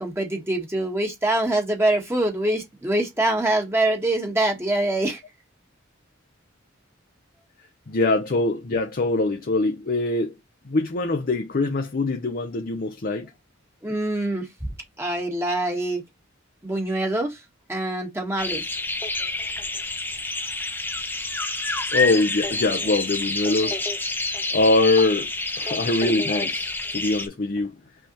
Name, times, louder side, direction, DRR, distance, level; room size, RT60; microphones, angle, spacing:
voice 1, 0.0-5.2 13.8-14.5 15.0-16.0 16.6-17.4 17.7-18.6, right 1 dB, 15° right, 1.2 m, -24 dB
voice 2, 7.9-10.3 10.6-13.3 21.9-23.8 24.5-25.3 25.6-27.7, left 2 dB, 45° left, 0.6 m, -23 dB
sound 1, 18.4-27.3, left 2 dB, 10° left, 0.7 m, -28 dB
5.5 x 3.3 x 2.9 m
head